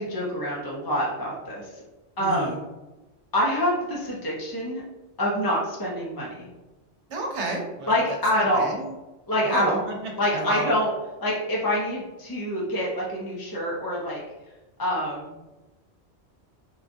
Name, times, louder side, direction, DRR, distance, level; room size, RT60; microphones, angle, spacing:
voice 1, 0.0-1.8 2.2-2.6 3.3-4.8 5.2-6.5 7.9-8.7 9.3-9.8 10.2-10.9 11.2-14.2 14.8-15.3, equal, 25° left, -5 dB, 0.5 m, -26 dB
voice 2, 2.2-2.6 7.1-8.0 8.4-8.9 9.4-10.7, right 2 dB, 70° right, 0 dB, 1.0 m, -31 dB
4.4 x 2.4 x 2.5 m, 1.1 s
omnidirectional pair, 1.2 m